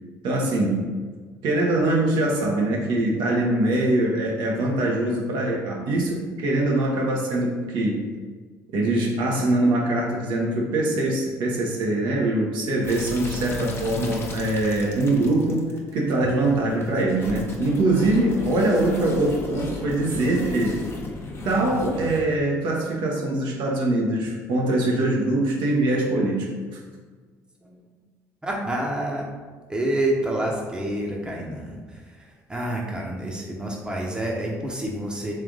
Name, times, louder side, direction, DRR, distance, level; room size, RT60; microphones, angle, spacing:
voice 1, 0.2-0.9 1.4-8.1 8.7-20.8 21.4-26.5, right 2 dB, 65° right, -2 dB, 0.9 m, -23 dB
sound 1, 12.8-22.4, left 2 dB, 30° left, 0.9 m, -35 dB
voice 2, 28.4-29.3 29.7-35.3, right 1 dB, 10° right, -1 dB, 0.9 m, -28 dB
3.3 x 3.3 x 3.7 m, 1.4 s
hypercardioid pair, 60°, 8 cm